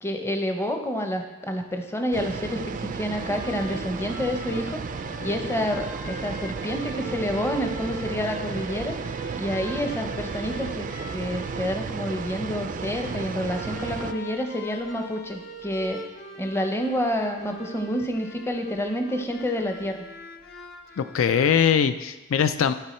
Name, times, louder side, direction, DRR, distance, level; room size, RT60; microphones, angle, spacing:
voice 1, 0.0-4.8 5.2-9.0 9.4-16.0 16.4-20.0, equal, 15° left, 5 dB, 0.7 m, -28 dB
sound 1, 2.1-14.1, right 5 dB, 40° right, 0.3 m, -33 dB
sound 2, 3.1-21.7, left 2 dB, 55° left, 0.8 m, -43 dB
voice 2, 21.0-22.7, left 7 dB, 85° left, 12 dB, 0.4 m, -21 dB
12.5 x 4.5 x 4.3 m, 1.1 s
head